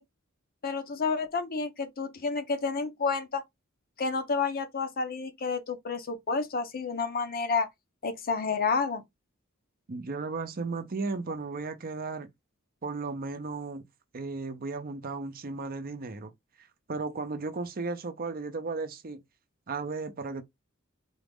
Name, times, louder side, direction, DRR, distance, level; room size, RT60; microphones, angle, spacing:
voice 1, 0.6-3.4 4.0-7.7 8.0-9.0, left 4 dB, 45° left, 0.7 m, -30 dB
voice 2, 9.9-12.3 12.8-13.9 14.1-16.3 16.6-19.2 19.7-20.4, right 3 dB, 45° right, 0.6 m, -35 dB
3.9 x 2.5 x 3.5 m
head